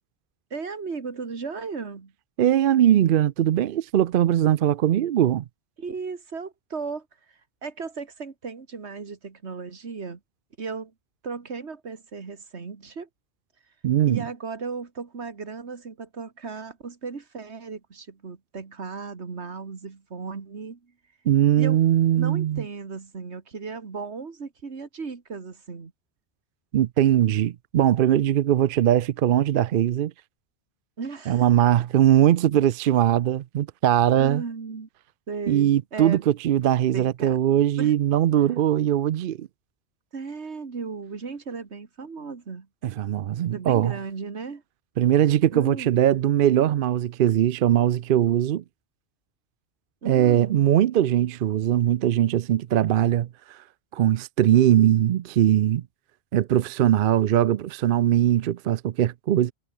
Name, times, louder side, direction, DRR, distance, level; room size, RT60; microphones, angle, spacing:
voice 1, 0.5-2.1 5.8-10.2 10.6-10.9 11.2-13.1 14.0-20.9 21.6-21.8 22.1-25.9 31.0-31.5 34.1-34.9 35.3-36.3 36.9-37.4 37.8-37.9 40.1-42.7 43.5-44.6 45.5-46.0 50.0-50.6, right 5 dB, 80° right, 2.2 m, -36 dB
voice 2, 2.4-5.4 13.8-14.2 21.3-22.6 26.7-30.1 31.3-34.4 35.5-39.5 42.8-43.9 45.0-48.6 50.1-53.6 53.9-55.8 56.3-59.5, right 11 dB, 60° right, 0.7 m, -21 dB
omnidirectional pair, 1.1 m